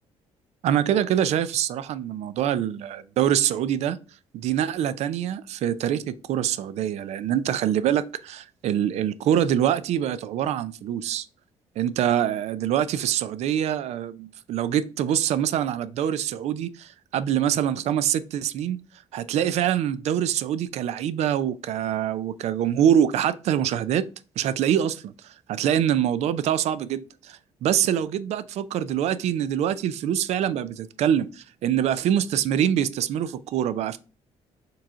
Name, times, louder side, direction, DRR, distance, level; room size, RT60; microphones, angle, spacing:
voice 1, 0.6-4.0 4.3-11.2 11.8-18.8 19.1-24.0 24.4-34.0, right 10 dB, 70° right, 0.4 m, -25 dB
4.7 x 3.2 x 3.5 m
cardioid pair, 115°, 12 cm